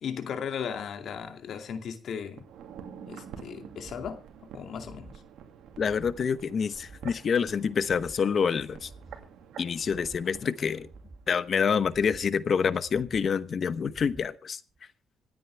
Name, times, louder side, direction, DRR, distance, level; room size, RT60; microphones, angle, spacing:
voice 1, 0.0-2.5 3.0-5.1, left 7 dB, 65° left, 2.4 m, -36 dB
sound 1, 2.3-11.4 11.7-11.8, right 7 dB, 80° right, 2.3 m, -48 dB
sound 2, 3.6-4.2 4.6-5.2 5.6-6.2 6.6-7.2 7.6-8.2 8.6-9.2 9.6-10.2 10.7-11.2 11.7-12.3 12.7-13.3 13.7-14.3 14.7-14.8, right 3 dB, 50° right, 6.5 m, -51 dB
voice 2, 5.8-8.9 9.6-10.9 11.3-14.6, left 6 dB, 50° left, 1.0 m, -27 dB
26.5 x 9.2 x 3.4 m
cardioid pair, 90°, 0 cm